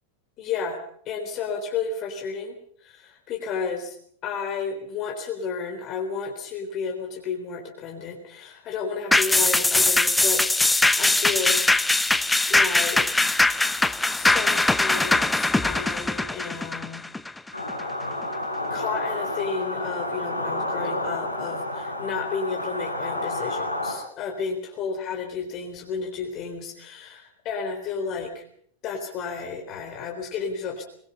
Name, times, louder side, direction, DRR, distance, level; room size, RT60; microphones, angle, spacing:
voice 1, 0.4-0.8 1.1-2.6 2.8-3.9 4.2-11.6 12.5-13.3 14.1-17.0 18.7-28.4 28.8-30.8, left 5 dB, 35° left, 2 dB, 3.8 m, -32 dB
sound 1, 9.1-17.8 18.2-18.3, left 2 dB, 5° left, 1.0 m, -21 dB
sound 2, 17.5-23.9, left 1 dB, 85° left, 5.3 m, -30 dB
23.0 x 22.5 x 5.7 m, 0.62 s
figure-of-eight pair, 90°, 0 cm